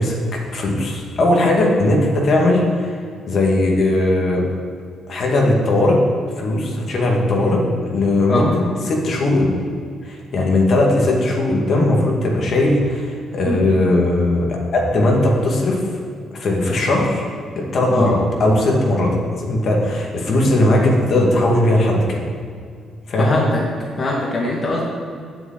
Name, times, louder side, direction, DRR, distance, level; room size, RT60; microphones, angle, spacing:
voice 1, 0.0-2.9 3.3-4.5 5.1-6.0 6.4-9.5 10.0-15.9 16.3-17.2 17.6-22.2 23.1-23.4, left 1 dB, 60° left, -1 dB, 2.3 m, -18 dB
voice 2, 23.2-23.6 24.0-24.8, left 2 dB, 40° left, -3 dB, 2.0 m, -21 dB
7.8 x 7.2 x 8.3 m, 2.2 s
cardioid pair, 90°, 0 cm